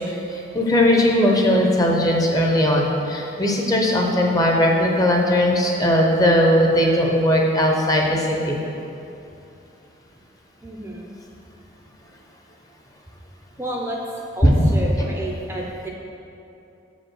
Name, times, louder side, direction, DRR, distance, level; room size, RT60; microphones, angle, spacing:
voice 1, 0.1-8.6 14.4-14.7 15.0-15.1, left 1 dB, 20° left, 0 dB, 0.8 m, -18 dB
voice 2, 10.6-11.1 13.6-14.0 14.3-15.9, right 1 dB, 10° right, -2 dB, 0.6 m, -30 dB
7.1 x 5.1 x 6.3 m, 2.7 s
head